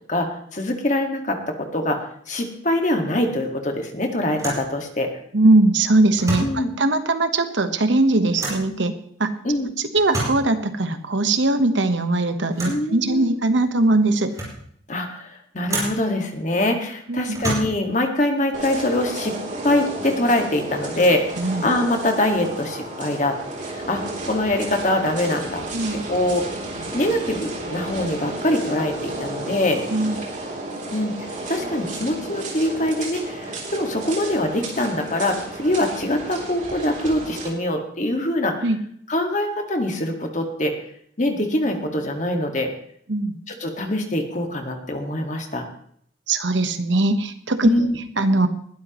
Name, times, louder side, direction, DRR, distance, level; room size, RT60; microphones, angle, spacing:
voice 1, 0.1-2.0 2.3-5.1 6.4-6.7 9.4-9.7 12.6-13.4 14.9-19.3 19.6-25.7 25.9-26.5 26.9-29.8 30.9-38.7 39.1-40.8 41.2-42.7 43.5-45.7 47.6-48.0, left 1 dB, 40° left, 4 dB, 1.8 m, -24 dB
sound 1, 4.3-4.7 6.1-6.6 8.4-8.7 9.9-10.5 12.5-12.9 13.6-13.7 14.1-14.7 15.7-16.1 17.3-17.9, right 2 dB, 20° right, 5.6 m, -29 dB
voice 2, 5.3-8.9 9.2-9.3 9.8-14.3 17.1-17.4 21.4-21.7 25.7-26.0 29.9-30.2 38.6-38.8 43.1-43.4 46.3-47.7 48.2-48.5, right 2 dB, 70° right, 9 dB, 1.2 m, -20 dB
sound 2, 18.5-37.5, right 2 dB, 40° right, 3.2 m, -32 dB
20.5 x 12.5 x 3.1 m, 0.65 s
head